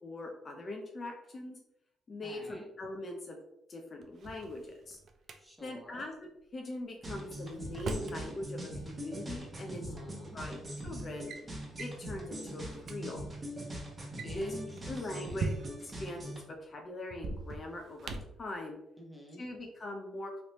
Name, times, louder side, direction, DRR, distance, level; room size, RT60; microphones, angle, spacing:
voice 1, 0.0-1.6 2.1-3.4 3.7-5.0 5.6-9.9 10.3-10.6 10.8-11.3 11.8-13.3 14.2-14.5 14.9-15.5 15.8-18.1 18.4-18.8 19.4-20.4, left 2 dB, 40° left, 2 dB, 0.6 m, -41 dB
voice 2, 2.2-2.7 5.4-6.1 9.7-10.4 14.2-15.5 19.0-19.4, equal, 5° right, -1 dB, 0.9 m, -49 dB
Drawer open or close, 4.0-5.4 7.0-8.2 9.5-9.6 10.4-10.7 11.0-11.4 11.8-12.0 12.5-12.6 12.8-13.0 14.0-16.0 17.1-18.4, right 3 dB, 60° right, 0.4 m, -40 dB
sound 1, 7.0-16.4, right 1 dB, 25° right, 1.1 m, -42 dB
3.1 x 2.7 x 3.0 m, 0.83 s
cardioid pair, 90°, 0 cm